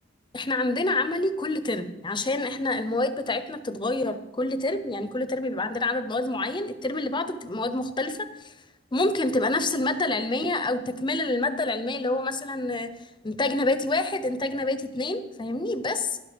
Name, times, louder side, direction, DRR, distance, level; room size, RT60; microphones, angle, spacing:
voice 1, 0.3-8.3 8.9-12.9 13.2-16.2, left 2 dB, 25° left, 11 dB, 0.7 m, -27 dB
12.0 x 11.0 x 5.2 m, 0.98 s
head